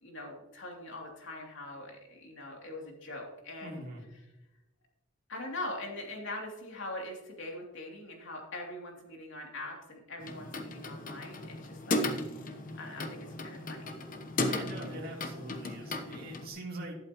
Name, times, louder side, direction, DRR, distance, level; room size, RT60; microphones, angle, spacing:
voice 1, 0.0-3.8 5.3-12.1 12.8-14.0, left 2 dB, 65° left, 0 dB, 3.0 m, -42 dB
voice 2, 3.6-4.0 14.4-17.0, right 1 dB, 50° right, -3 dB, 2.7 m, -42 dB
sound 1, 10.2-16.5, left 2 dB, 45° left, 1.1 m, -36 dB
12.0 x 11.5 x 3.1 m, 0.98 s
head